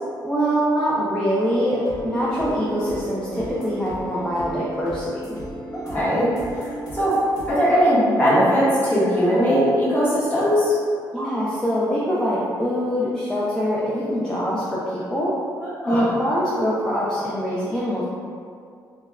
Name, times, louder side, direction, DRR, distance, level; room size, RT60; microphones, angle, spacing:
voice 1, 0.2-5.4 11.1-15.3 15.9-18.0, equal, 10° left, -8 dB, 0.3 m, -24 dB
sound 1, 1.6-8.9, right 1 dB, 50° left, 1.1 m, -35 dB
voice 2, 5.7-7.2 7.5-10.7 15.6-16.1, equal, 25° left, -9 dB, 1.0 m, -20 dB
2.1 x 2.0 x 3.4 m, 2.2 s
cardioid pair, 120°, 8 cm